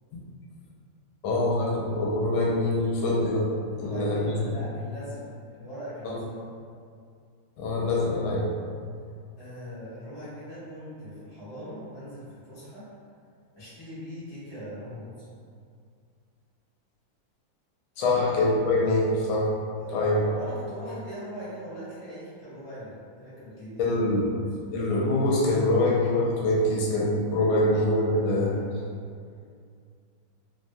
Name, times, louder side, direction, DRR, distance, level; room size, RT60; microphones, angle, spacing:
voice 1, 1.2-3.5 3.7-4.5 6.0-6.2 7.6-8.5 18.0-19.5 19.9-20.2 23.8-24.3 24.7-28.6, left 2 dB, 80° left, -4 dB, 1.3 m, -24 dB
voice 2, 3.7-6.3 9.4-12.9 13.5-15.3 18.0-18.2 19.8-23.9 24.4-24.5 28.2-28.9, equal, 20° left, -12 dB, 0.9 m, -41 dB
3.3 x 2.1 x 2.6 m, 2.3 s
omnidirectional pair, 2.2 m